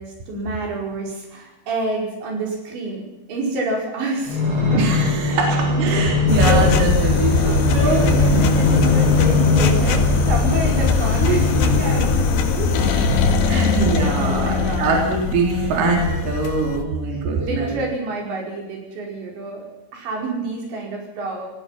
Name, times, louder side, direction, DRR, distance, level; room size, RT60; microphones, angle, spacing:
voice 1, 0.0-3.0 3.3-4.9 5.2-6.0 6.3-6.7 7.0-7.1 7.5-12.8 13.5-13.8 14.2-14.9 17.1-19.6 19.9-21.5, right 3 dB, 75° right, 0 dB, 7.5 m, -28 dB
sound 1, 4.3-12.2 12.8-14.1 14.7-14.8, left 3 dB, 30° right, 4.9 m, -22 dB
voice 2, 4.7-8.4 9.6-9.7 13.5-17.8, right 4 dB, 50° right, 0 dB, 4.8 m, -23 dB
sound 2, 6.3-16.8, left 5 dB, 70° left, 3.8 m, -20 dB
27.5 x 18.0 x 5.9 m, 1.0 s
omnidirectional pair, 5.2 m